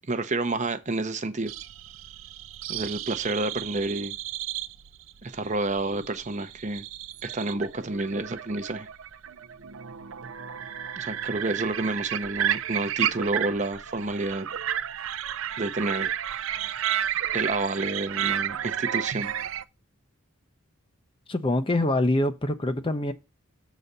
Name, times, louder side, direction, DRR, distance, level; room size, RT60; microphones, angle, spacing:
voice 1, 0.1-1.5 2.7-4.2 5.2-6.8 7.2-8.9 11.0-14.5 15.6-16.1 17.3-19.3, right 2 dB, 35° right, 0.8 m, -29 dB
sound 1, 1.5-19.6, right 10 dB, 65° right, 0.5 m, -32 dB
voice 2, 21.3-23.1, left 1 dB, 25° left, 0.6 m, -25 dB
7.1 x 4.1 x 6.6 m
head